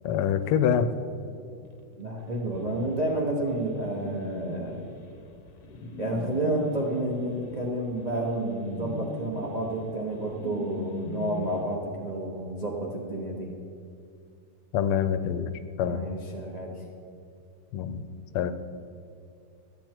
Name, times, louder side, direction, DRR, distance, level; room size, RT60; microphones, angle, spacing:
voice 1, 0.0-0.9 14.7-15.5 15.8-16.1 17.7-18.0 18.3-18.5, left 8 dB, 85° left, 11 dB, 1.5 m, -25 dB
voice 2, 2.0-4.8 6.0-13.5 15.8-16.7, right 1 dB, 45° right, -2 dB, 0.5 m, -30 dB
sound 1, 2.5-11.6, left 2 dB, 55° left, 1.2 m, -39 dB
13.5 x 8.8 x 4.4 m, 2.4 s
omnidirectional pair, 2.4 m